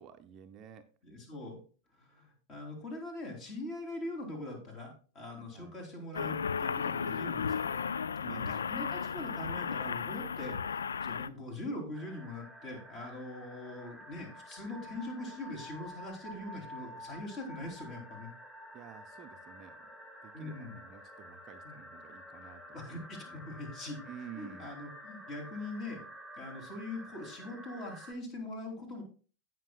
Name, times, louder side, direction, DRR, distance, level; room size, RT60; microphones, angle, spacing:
voice 1, 0.0-0.9 5.5-5.7 8.2-8.7 18.7-19.8 20.2-23.0 23.3-23.4 24.1-24.7, right 8 dB, 35° right, 7 dB, 0.7 m, -51 dB
voice 2, 1.0-1.6 1.9-7.8 8.1-18.3 20.3-20.8 21.6-21.7 22.7-24.0 24.3-26.0 26.4-29.0, left 2 dB, 35° left, 2 dB, 3.4 m, -42 dB
sound 1, 6.1-11.3, left 6 dB, 70° left, 0.3 m, -34 dB
sound 2, 11.9-28.1, equal, 5° left, 1.4 m, -50 dB
16.0 x 5.9 x 2.4 m, 0.38 s
figure-of-eight pair, 90°, 0 cm